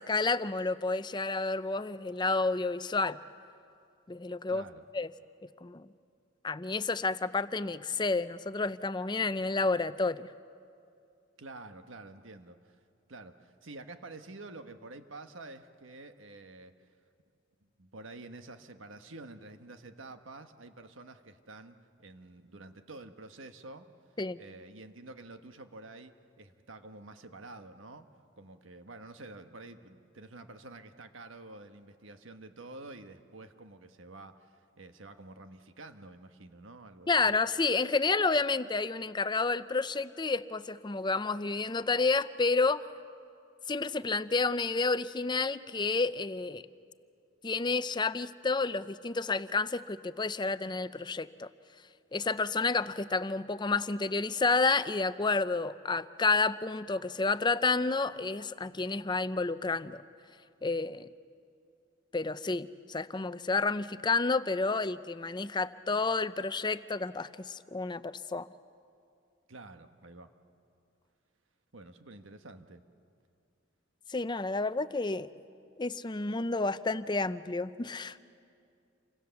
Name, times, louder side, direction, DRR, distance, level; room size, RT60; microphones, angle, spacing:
voice 1, 0.0-3.2 4.1-4.6 4.9-5.1 5.6-5.9 6.4-10.3 24.2-24.4 37.1-42.9 43.7-46.6 47.4-51.5 52.1-60.0 60.6-61.1 62.1-68.5 74.1-75.3 75.8-78.2, left 3 dB, 25° left, 14 dB, 0.5 m, -30 dB
voice 2, 4.5-4.8 11.4-12.8 13.1-16.7 17.8-23.9 24.4-28.1 28.4-37.3 69.5-70.3 71.7-72.8, right 2 dB, 85° right, 8 dB, 1.4 m, -49 dB
29.0 x 24.5 x 7.1 m, 2.4 s
head